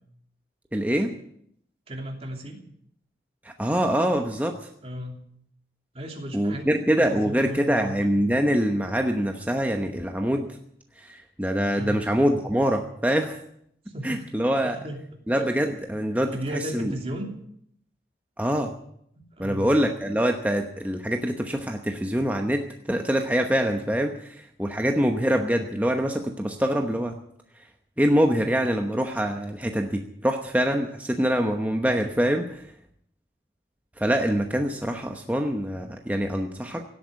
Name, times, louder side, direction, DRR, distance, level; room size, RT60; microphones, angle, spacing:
voice 1, 0.7-1.1 3.4-4.6 6.3-10.5 11.0-13.4 14.0-14.8 15.3-16.4 16.7-16.9 18.4-18.7 19.4-27.2 28.0-32.6 34.0-36.8, equal, 10° right, 4 dB, 0.9 m, -24 dB
voice 2, 1.9-2.6 4.8-5.2 5.9-7.9 11.8-12.0 13.9-15.0 15.6-15.7 16.3-17.3 19.4-19.7, equal, 30° right, 2 dB, 2.9 m, -35 dB
17.0 x 8.5 x 9.5 m, 0.70 s
head